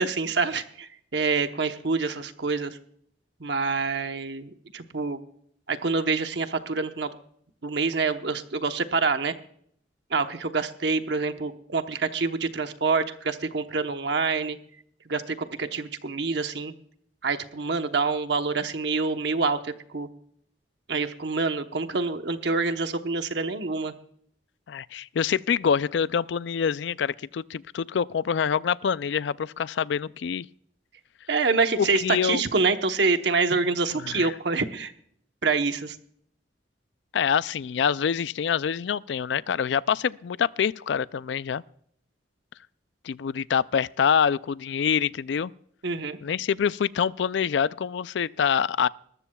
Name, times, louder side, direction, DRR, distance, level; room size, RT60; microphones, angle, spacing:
voice 1, 0.0-2.8 3.4-5.2 5.7-7.1 7.6-9.3 10.1-14.6 15.1-16.7 17.2-20.1 20.9-23.9 31.3-34.9 35.4-36.0 45.8-46.2, right 4 dB, 65° right, 1.0 m, -26 dB
voice 2, 24.7-30.5 31.8-32.4 34.0-34.3 37.1-41.6 43.1-45.5 46.2-48.9, left 7 dB, 70° left, 0.4 m, -26 dB
20.0 x 14.0 x 2.3 m
head